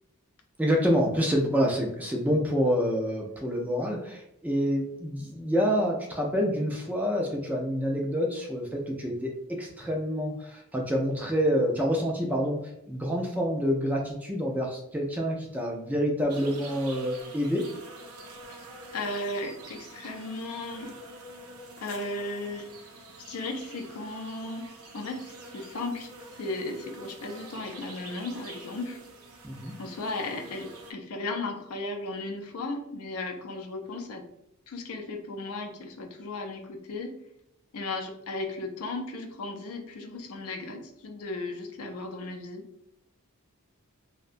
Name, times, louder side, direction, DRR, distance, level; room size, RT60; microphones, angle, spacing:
voice 1, 0.6-17.7 29.4-29.7, equal, 5° right, 0 dB, 0.3 m, -27 dB
sound 1, 16.3-30.9, right 2 dB, 85° right, 0.5 m, -46 dB
voice 2, 18.9-21.0 21.8-22.7 23.2-29.0 29.8-34.3 34.7-37.2 37.7-42.7, left 2 dB, 80° left, 4 dB, 0.4 m, -36 dB
2.6 x 2.1 x 2.5 m, 0.78 s
head